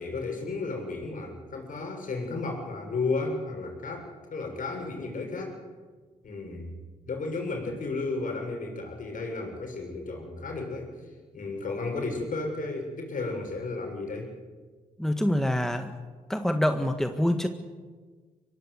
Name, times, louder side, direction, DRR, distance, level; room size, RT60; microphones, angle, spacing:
voice 1, 0.0-5.5 6.2-6.8 7.0-10.9 11.3-14.3, left 3 dB, 55° left, 2 dB, 7.1 m, -33 dB
voice 2, 15.0-15.9 16.3-17.5, left 1 dB, 5° left, 7 dB, 1.8 m, -25 dB
24.0 x 18.0 x 8.2 m, 1.5 s
supercardioid pair, 50°, 16 cm